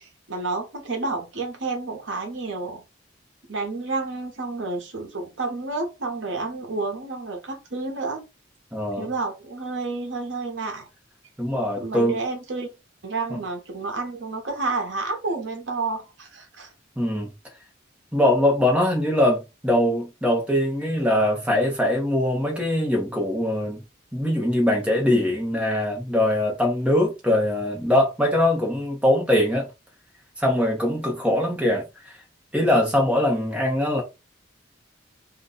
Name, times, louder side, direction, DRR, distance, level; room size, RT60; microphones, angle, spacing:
voice 1, 0.0-2.8 3.5-8.3 9.0-10.9 11.8-12.7 13.0-16.7, right 3 dB, 75° right, 0.9 m, -30 dB
voice 2, 8.7-9.1 11.4-12.2 13.3-13.4 17.0-17.3 18.1-23.8 24.1-29.7 30.4-31.8 32.5-34.0, left 1 dB, 5° right, 0.8 m, -22 dB
2.6 x 2.2 x 3.8 m
head